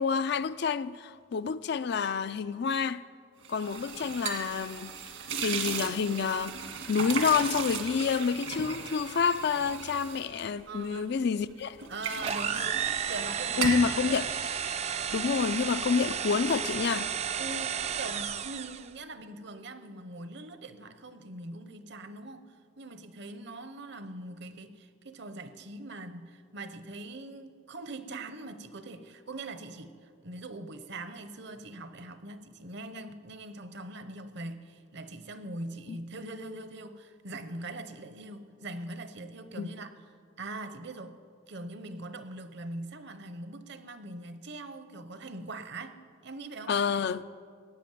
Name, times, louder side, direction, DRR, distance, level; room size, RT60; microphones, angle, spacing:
voice 1, 0.0-3.0 3.5-4.9 5.4-6.6 6.9-11.8 13.6-14.3 15.1-17.1 35.9-36.0 39.6-39.7 46.7-47.3, left 6 dB, 55° left, 0.4 m, -28 dB
sound 1, 3.4-11.2 11.6-13.3 13.5-13.9, right 5 dB, 75° right, 1.8 m, -36 dB
voice 2, 10.7-11.1 11.9-14.2 17.4-39.9 40.4-46.7, right 2 dB, 55° right, 0.9 m, -42 dB
sound 2, 12.2-18.9, right 8 dB, 30° right, 0.4 m, -32 dB
15.5 x 8.5 x 9.1 m
head